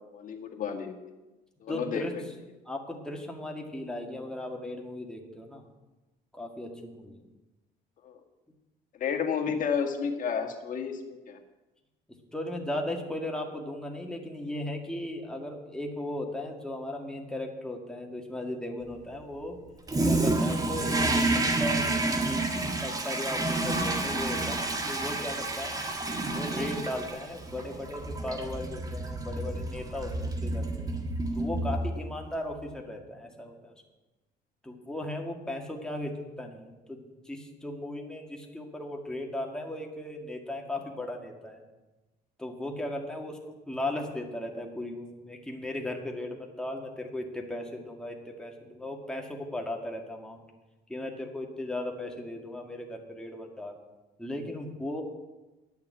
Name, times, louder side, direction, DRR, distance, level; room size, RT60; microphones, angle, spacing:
voice 1, 0.1-0.9 1.6-2.1 8.0-8.2 9.0-11.4, left 6 dB, 50° left, 4 dB, 1.8 m, -31 dB
voice 2, 1.7-2.1 2.7-5.6 6.3-7.2 12.1-19.6 20.0-21.9 22.3-25.8 26.3-30.9 31.3-33.8 34.6-41.6 42.4-50.4 50.9-53.8 54.2-55.0, left 1 dB, 5° left, 1 dB, 1.9 m, -37 dB
Toilet flush, 19.9-32.2, right 2 dB, 20° right, 1.6 m, -29 dB
10.5 x 7.1 x 9.1 m, 1.1 s
cardioid pair, 110°, 17 cm